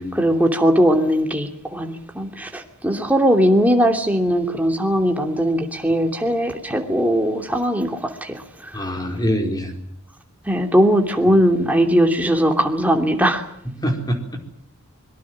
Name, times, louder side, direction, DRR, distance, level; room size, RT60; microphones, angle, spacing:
voice 1, 0.0-8.8 10.5-13.4, equal, 5° right, 3 dB, 2.9 m, -19 dB
voice 2, 8.7-9.7 11.3-11.4 13.7-14.2, equal, 15° left, 3 dB, 4.4 m, -24 dB
25.0 x 23.0 x 7.7 m, 0.71 s
head